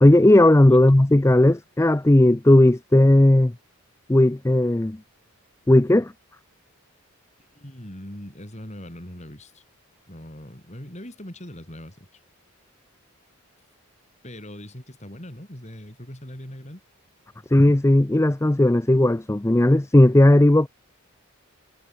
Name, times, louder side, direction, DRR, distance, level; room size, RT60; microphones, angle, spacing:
voice 1, 0.0-3.5 4.1-5.0 5.7-6.1 17.5-20.7, left 1 dB, 10° left, 0.5 m, -16 dB
voice 2, 7.5-9.6 10.1-12.1 14.2-16.8, left 1 dB, 30° left, 3.8 m, -40 dB
head